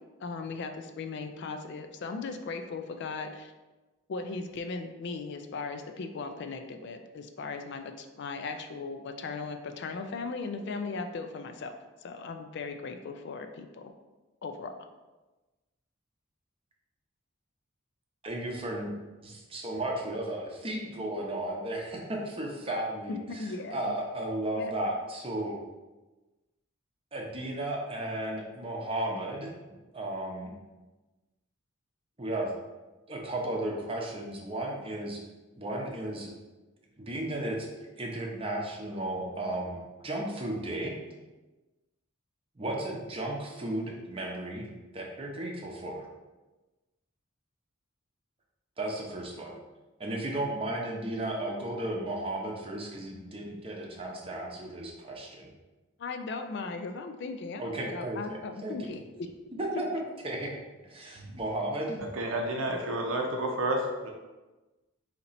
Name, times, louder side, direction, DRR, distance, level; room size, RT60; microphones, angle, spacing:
voice 1, 0.2-3.5 4.1-11.7 12.0-13.9 14.4-14.7 23.1-23.9 24.5-24.8 56.0-59.3, left 4 dB, 55° left, 6 dB, 0.4 m, -38 dB
voice 2, 18.2-18.9 19.2-25.6 27.1-29.5 29.9-30.5 32.2-32.5 33.1-35.2 35.6-36.3 37.0-37.7 38.0-41.0 42.6-44.7 44.9-46.1 48.8-49.5 50.0-55.5 57.6-58.2 58.6-58.9 59.6-59.9 60.2-60.5 60.8-62.0, right 1 dB, 25° right, 0 dB, 0.7 m, -34 dB
voice 3, 62.1-64.1, right 1 dB, 75° right, 1 dB, 0.6 m, -30 dB
4.1 x 2.9 x 4.0 m, 1.2 s
head